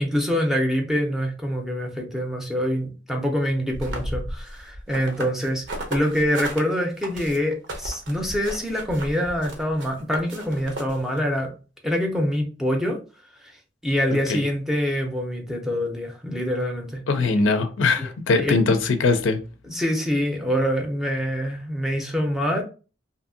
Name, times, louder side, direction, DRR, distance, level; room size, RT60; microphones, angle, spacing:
voice 1, 0.0-11.5 11.8-13.0 13.4-13.6 13.8-17.3 18.0-18.1 18.4-18.6 19.6-22.6, equal, ahead, 0.5 m, -25 dB
sound 1, 3.7-6.6 7.0-11.2, right 1 dB, 70° right, 0.7 m, -34 dB
voice 2, 17.1-19.4, left 3 dB, 85° left, 0.5 m, -21 dB
2.7 x 2.6 x 2.6 m
head